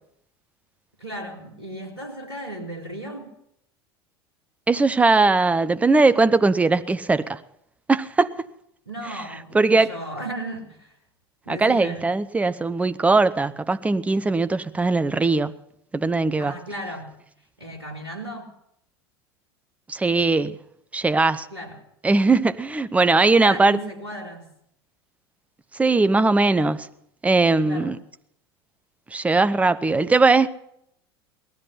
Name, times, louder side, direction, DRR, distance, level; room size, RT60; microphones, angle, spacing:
voice 1, 1.0-3.3 8.9-11.0 11.5-12.1 16.4-17.2 17.6-18.5 21.5-21.8 23.3-24.5 27.6-28.0, right 1 dB, 90° right, 2.3 m, -35 dB
voice 2, 4.7-7.4 7.9-8.5 9.1-9.2 9.5-10.0 11.5-15.6 15.9-16.6 19.9-20.6 20.9-21.5 22.0-23.8 25.7-26.9 27.2-28.0 29.1-30.5, right 3 dB, 10° right, 0.7 m, -20 dB
18.0 x 13.0 x 5.7 m
figure-of-eight pair, 75°, 13 cm